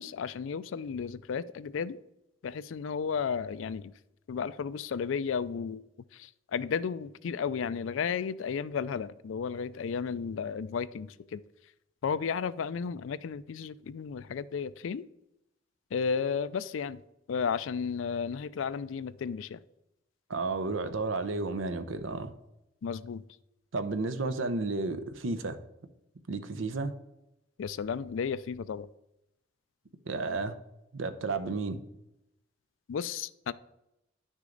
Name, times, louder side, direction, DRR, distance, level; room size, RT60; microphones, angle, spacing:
voice 1, 0.0-2.0 2.4-3.9 4.3-5.8 6.1-11.4 12.0-15.1 15.9-17.0 17.3-19.6 22.8-23.2 27.6-28.9 32.9-33.5, left 6 dB, 85° left, 0.4 m, -33 dB
voice 2, 20.3-22.3 23.7-25.6 26.3-26.9 30.1-30.5 30.9-31.8, right 3 dB, 90° right, 0.7 m, -32 dB
10.5 x 6.3 x 3.9 m
head